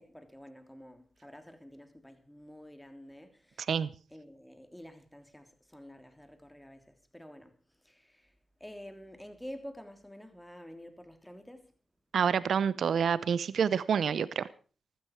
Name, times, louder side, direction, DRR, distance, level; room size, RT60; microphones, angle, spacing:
voice 1, 0.0-3.8 4.1-7.6 7.8-8.3 8.6-11.7, equal, 5° left, 3.2 m, -49 dB
voice 2, 12.1-14.4, right 7 dB, 75° right, 0.7 m, -28 dB
15.0 x 12.5 x 4.6 m
supercardioid pair, 40°, 0 cm